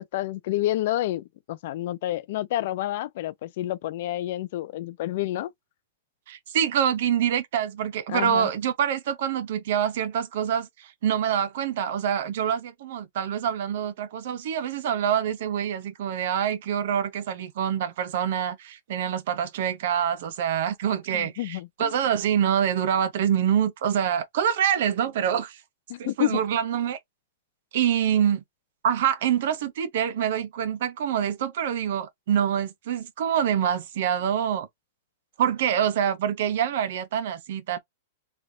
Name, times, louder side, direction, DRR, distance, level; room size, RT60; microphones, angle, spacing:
voice 1, 0.0-5.5 8.1-8.5 21.1-21.9 25.9-26.4, left 14 dB, 55° left, 0.3 m, -29 dB
voice 2, 6.3-25.6 26.0-27.0 27.7-28.4 28.8-34.7 35.4-37.8, right 9 dB, 65° right, 0.7 m, -26 dB
3.2 x 2.3 x 2.6 m
supercardioid pair, 150°, 0 cm